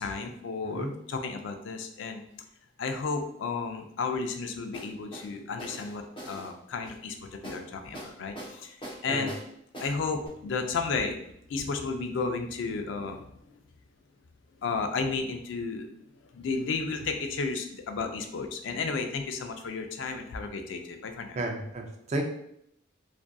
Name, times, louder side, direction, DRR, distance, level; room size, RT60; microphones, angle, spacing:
voice 1, 0.0-2.2 2.8-8.8 9.0-9.3 9.8-11.2 11.5-13.3 14.6-15.9 16.2-21.4, left 4 dB, 75° left, 5 dB, 0.4 m, -33 dB
sound 1, 4.7-5.3 5.6-6.5 7.4-7.6 7.9-8.6 8.8-9.5 9.7-9.9 10.3-10.4, right 1 dB, 25° left, 0.6 m, -41 dB
voice 2, 21.4-22.2, right 2 dB, 35° right, 4 dB, 0.3 m, -32 dB
2.5 x 2.4 x 2.2 m, 0.73 s
head